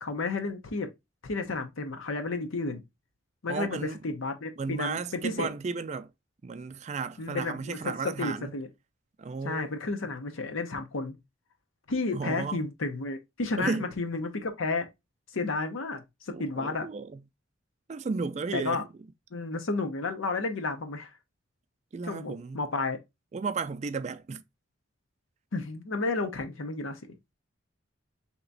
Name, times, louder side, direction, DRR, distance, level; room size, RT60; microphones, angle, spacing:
voice 1, 0.0-0.9 1.2-2.8 3.4-5.5 7.2-8.7 9.4-11.2 11.9-14.9 15.3-16.9 18.5-18.8 19.3-21.1 22.1-23.0 25.5-27.0, left 3 dB, 85° left, 0.8 m, -32 dB
voice 2, 3.5-4.0 4.6-6.1 6.4-8.5 9.2-9.7 12.1-12.6 13.6-13.8 16.3-17.2 17.9-18.9 21.9-22.6 23.3-24.4, right 4 dB, 35° right, 0.3 m, -34 dB
3.4 x 2.9 x 3.8 m
head